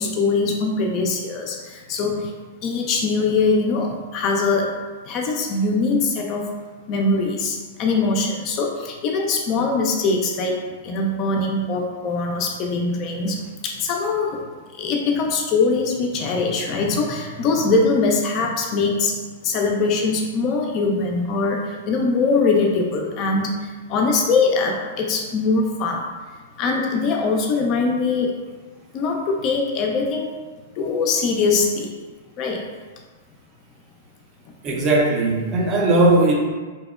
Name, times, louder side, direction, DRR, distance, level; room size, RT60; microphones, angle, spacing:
voice 1, 0.0-2.3 2.6-4.7 5.1-6.5 6.9-10.6 10.8-14.4 14.8-19.2 19.4-26.1 26.6-28.3 28.9-30.3 30.8-31.9 32.4-32.6, left 3 dB, 40° left, 0 dB, 0.3 m, -22 dB
voice 2, 34.6-36.3, right 2 dB, 35° right, -2 dB, 0.5 m, -18 dB
2.8 x 2.0 x 2.3 m, 1.4 s
hypercardioid pair, 110°, 0 cm